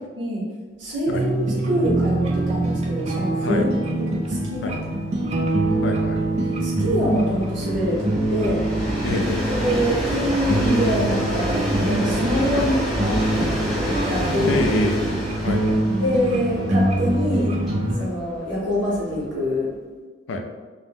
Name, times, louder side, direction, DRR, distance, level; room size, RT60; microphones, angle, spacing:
voice 1, 0.8-1.3 1.6-3.7 4.3-4.7 5.1-5.4 6.4-8.6 9.6-12.8 13.0-14.7 16.0-17.5 18.0-19.7, equal, 85° right, -6 dB, 1.1 m, -25 dB
sound 1, 1.1-18.0, right 2 dB, 35° right, 0.3 m, -24 dB
Train, 1.3-1.4 1.8-1.9 2.1-19.6, equal, ahead, 0.7 m, -29 dB
voice 2, 5.8-6.2 9.0-9.5 12.5-12.7 14.4-15.1 15.4-15.8 17.9-18.1 20.3-20.4, left 2 dB, 90° left, 4 dB, 0.4 m, -27 dB
2.5 x 2.1 x 3.4 m, 1.3 s
head